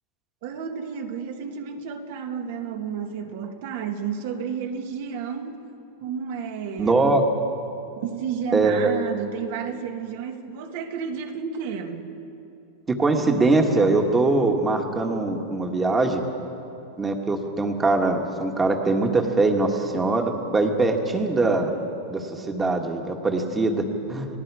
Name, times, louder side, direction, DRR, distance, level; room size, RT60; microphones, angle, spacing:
voice 1, 0.4-5.6 6.0-7.2 8.0-12.1, right 7 dB, 60° right, 4 dB, 2.0 m, -31 dB
voice 2, 6.8-7.2 8.5-8.9 12.9-16.2 17.0-21.7 22.1-24.3, right 3 dB, 15° right, 4 dB, 1.7 m, -22 dB
30.0 x 19.0 x 4.9 m, 2.8 s
supercardioid pair, 150°, 0 cm